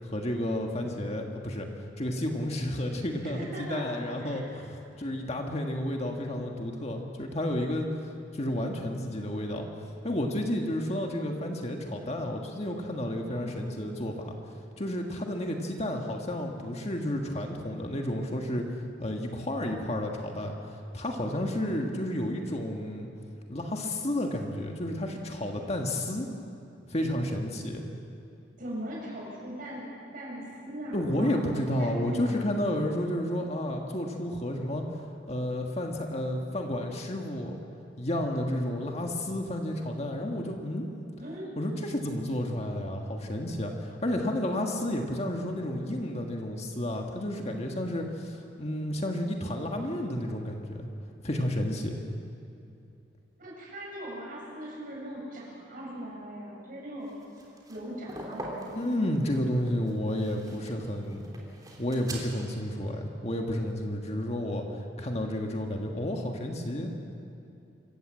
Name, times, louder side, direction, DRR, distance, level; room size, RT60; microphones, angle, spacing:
voice 1, 0.0-1.7 2.0-8.1 8.3-9.7 10.0-14.3 14.8-18.7 19.0-20.6 20.9-23.1 23.5-26.3 26.9-27.8 30.9-37.6 38.0-40.9 41.6-50.9 51.2-52.0 58.7-61.3 61.8-66.9, left 1 dB, 35° left, 2 dB, 1.7 m, -31 dB
voice 2, 3.2-4.5 13.2-13.6 28.6-29.9 30.1-32.3 41.2-41.5 53.4-57.1 57.7-58.7, equal, 50° right, -4 dB, 7.5 m, -40 dB
sound 1, 57.1-62.5, right 1 dB, 20° right, 3.3 m, -43 dB
26.0 x 15.0 x 7.8 m, 2.7 s
head